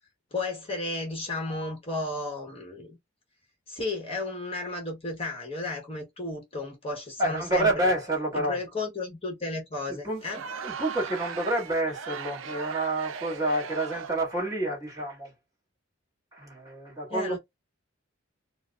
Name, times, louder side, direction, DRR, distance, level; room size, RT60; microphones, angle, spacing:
voice 1, 0.3-3.0 3.7-7.9 8.3-10.4 17.1-17.4, left 2 dB, 30° left, 1.0 m, -33 dB
voice 2, 7.2-8.6 9.9-10.2 10.6-15.3 16.3-17.4, right 1 dB, 20° right, 1.9 m, -28 dB
Crowd, 10.2-14.3, right 6 dB, 70° right, 0.4 m, -38 dB
4.6 x 2.0 x 2.3 m
head